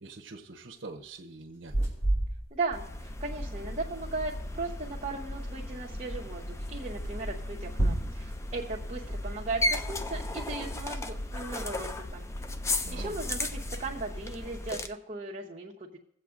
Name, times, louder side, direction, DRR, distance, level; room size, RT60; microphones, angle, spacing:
voice 1, 0.0-1.8 12.8-13.2, right 3 dB, 65° right, 2 dB, 0.8 m, -45 dB
sound 1, 1.5-2.9 3.2-3.3 3.4-3.5 3.7-4.9 5.8-5.9 6.2-6.3 7.0-8.4 9.2-11.5 11.8-12.2 12.5-13.7, right 1 dB, 90° left, 3.9 m, -34 dB
voice 2, 2.5-12.2 12.9-16.0, right 3 dB, 35° right, -5 dB, 1.0 m, -37 dB
sound 2, 2.7-14.9, left 1 dB, 15° left, 0.3 m, -35 dB
22.0 x 7.9 x 2.5 m, 0.73 s
head